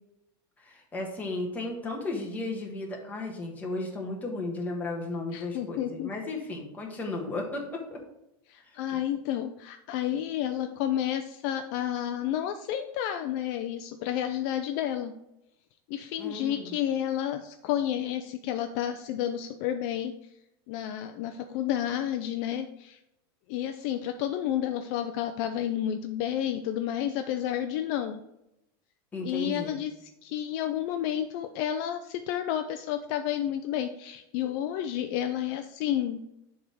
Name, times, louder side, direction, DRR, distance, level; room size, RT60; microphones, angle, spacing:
voice 1, 0.6-8.0 8.6-9.0 16.2-16.7 29.1-29.7, left 2 dB, 15° left, 0 dB, 1.4 m, -35 dB
voice 2, 5.3-6.1 8.5-15.1 15.9-20.1 20.7-23.0 23.5-28.2 29.2-29.9 30.2-36.2, left 11 dB, 50° left, 8 dB, 0.5 m, -31 dB
7.1 x 3.6 x 6.1 m, 0.86 s
supercardioid pair, 160°, 12 cm